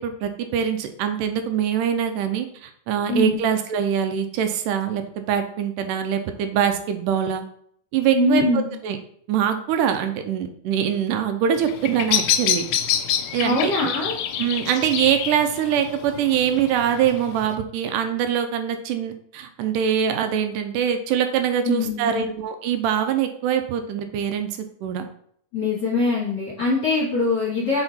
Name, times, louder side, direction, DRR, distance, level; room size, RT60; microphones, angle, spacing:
voice 1, 0.0-7.4 7.9-8.4 8.8-9.0 9.3-12.6 13.3-13.7 14.4-25.1, right 8 dB, 80° right, 7 dB, 2.1 m, -23 dB
voice 2, 8.1-8.7 13.4-14.2 21.6-22.3 25.5-27.8, left 3 dB, 40° left, -7 dB, 2.0 m, -23 dB
Bird vocalization bird call bird song, 11.6-17.6, left 10 dB, 80° left, 1.8 m, -27 dB
5.8 x 4.4 x 4.2 m, 0.63 s
omnidirectional pair, 3.9 m